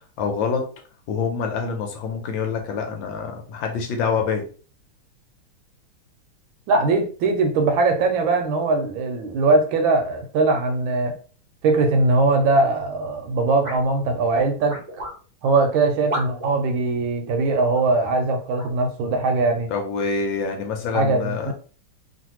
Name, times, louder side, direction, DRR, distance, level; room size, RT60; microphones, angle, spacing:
voice 1, 0.2-0.6 1.1-4.4 19.7-21.5, left 5 dB, 75° left, 3 dB, 1.3 m, -26 dB
voice 2, 6.7-11.2 11.6-14.8 15.4-19.7 20.9-21.5, right 3 dB, 75° right, 5 dB, 1.3 m, -21 dB
sound 1, 13.6-13.9 14.7-15.2 16.1-16.6 17.7-17.8 18.6-18.8, equal, 50° right, 0.7 m, -31 dB
3.2 x 2.5 x 2.9 m, 0.39 s
omnidirectional pair, 2.3 m